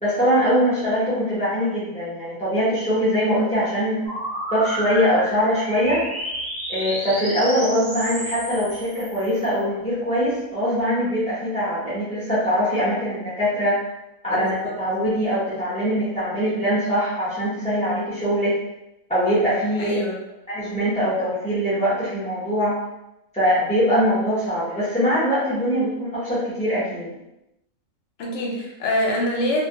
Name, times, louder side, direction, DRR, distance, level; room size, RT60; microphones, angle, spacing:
voice 1, 0.0-4.1 4.5-6.0 6.7-13.8 14.2-18.6 19.1-20.0 20.5-22.8 23.3-27.2, equal, 10° left, -11 dB, 0.3 m, -22 dB
sound 1, 4.1-9.6, equal, 10° right, 1.0 m, -31 dB
voice 2, 14.3-14.7 19.8-20.1 28.2-29.6, left 1 dB, 65° left, -1 dB, 0.8 m, -25 dB
2.3 x 2.2 x 2.7 m, 0.90 s
omnidirectional pair, 1.6 m